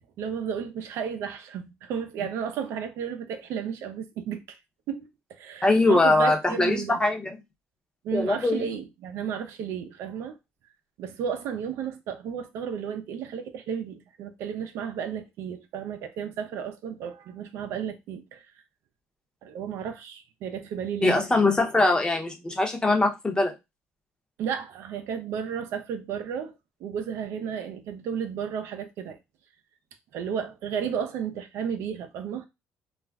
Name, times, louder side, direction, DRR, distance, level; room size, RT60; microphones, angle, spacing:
voice 1, 0.2-4.4 4.9-5.1 5.4-7.0 8.0-10.4 11.0-18.5 19.4-21.3 24.4-26.5 26.8-29.2 30.1-32.5, right 7 dB, 75° right, 0.5 m, -33 dB
voice 2, 5.6-7.3 8.1-8.7 21.0-23.5, left 2 dB, 20° left, 0.7 m, -22 dB
2.4 x 2.1 x 3.4 m
cardioid pair, 95°, 4 cm